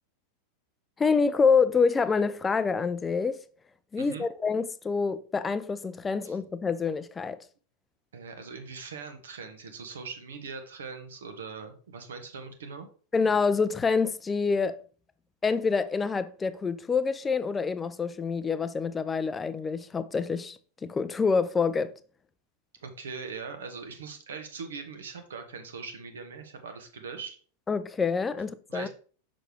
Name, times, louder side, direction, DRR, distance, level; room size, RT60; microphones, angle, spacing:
voice 1, 1.0-3.4 3.9-7.4 13.1-14.8 15.4-21.9 27.7-28.9, left 5 dB, 15° left, 0.5 m, -27 dB
voice 2, 8.1-12.9 22.8-27.4 28.7-28.9, right 5 dB, 65° right, 1.3 m, -41 dB
6.5 x 6.2 x 3.2 m
figure-of-eight pair, 90°, 0 cm